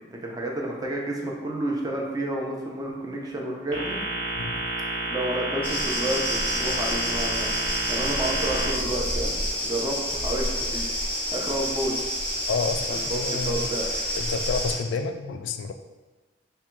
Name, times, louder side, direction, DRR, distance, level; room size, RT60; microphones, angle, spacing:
voice 1, 0.1-4.0 5.0-7.5 7.9-9.4 9.6-10.9 11.3-12.0 12.9-13.9, right 1 dB, 20° right, -1 dB, 0.5 m, -30 dB
sound 1, 3.7-8.7, right 2 dB, 60° right, 1.0 m, -30 dB
sound 2, 5.6-14.7, equal, 10° left, 0.9 m, -29 dB
voice 2, 12.5-13.7 14.1-15.7, left 4 dB, 90° left, 8 dB, 0.3 m, -29 dB
3.5 x 2.2 x 4.3 m, 1.3 s
head